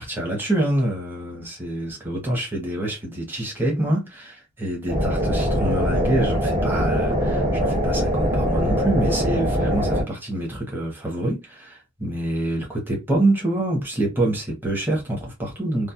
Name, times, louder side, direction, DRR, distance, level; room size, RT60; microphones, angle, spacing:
voice 1, 0.0-15.9, right 1 dB, 10° right, 0.8 m, -26 dB
sound 1, 4.9-10.0, equal, 55° right, 1.2 m, -22 dB
2.3 x 2.0 x 2.7 m
head